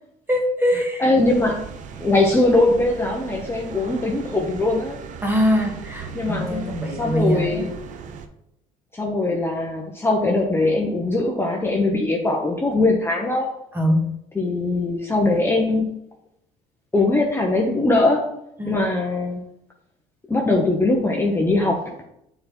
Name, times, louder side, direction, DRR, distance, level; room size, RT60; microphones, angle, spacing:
voice 1, 0.3-1.1 5.2-7.7 13.7-14.1 18.6-18.8, equal, 15° right, 1 dB, 1.8 m, -22 dB
voice 2, 1.0-1.7 2.0-5.0 6.1-7.7 8.9-13.5 14.4-16.0 16.9-18.4 18.7-19.4 20.3-22.0, left 2 dB, 15° left, 0 dB, 1.0 m, -21 dB
sound 1, 1.2-8.3, right 6 dB, 55° right, 0.8 m, -38 dB
6.6 x 4.0 x 4.4 m, 0.78 s
supercardioid pair, 85°, 16 cm